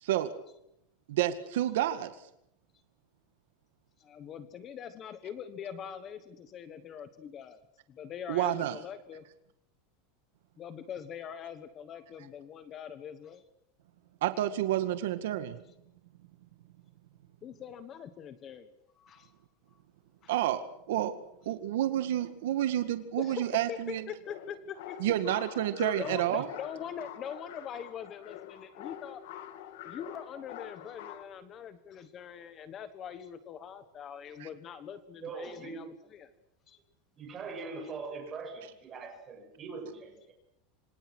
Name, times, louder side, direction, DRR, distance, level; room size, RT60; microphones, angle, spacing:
voice 1, 0.0-0.3 1.1-2.1 8.3-8.8 14.2-15.6 20.3-21.1 21.5-24.0 25.0-26.5 34.4-34.5, right 12 dB, 75° right, 9 dB, 1.9 m, -29 dB
voice 2, 4.0-7.6 7.9-9.2 10.6-13.4 17.4-18.7 19.0-19.3 20.2-20.3 23.2-25.1 25.8-29.2 29.8-36.3 36.7-36.8, left 8 dB, 25° left, 11 dB, 1.3 m, -42 dB
sound 1, 24.2-31.2, left 11 dB, 65° left, 2.4 m, -46 dB
voice 3, 35.1-35.9 37.2-40.3, right 4 dB, 20° right, 3 dB, 7.2 m, -42 dB
27.0 x 26.0 x 6.4 m, 0.80 s
supercardioid pair, 175°, 0 cm